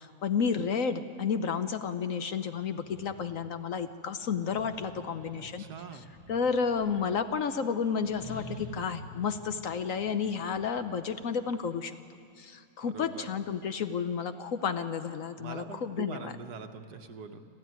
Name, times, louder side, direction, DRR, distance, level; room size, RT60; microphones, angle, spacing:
voice 1, 0.0-5.6 5.9-12.0 12.4-16.3, left 6 dB, 60° left, 9 dB, 1.1 m, -31 dB
sound 1, 2.7-3.2 4.4-7.1 8.0-11.3, equal, 80° left, 8.1 m, -47 dB
voice 2, 5.4-6.0 12.8-13.3 15.4-17.5, right 6 dB, 70° right, 7 dB, 1.6 m, -43 dB
25.5 x 14.5 x 9.4 m, 2.4 s
omnidirectional pair, 1.8 m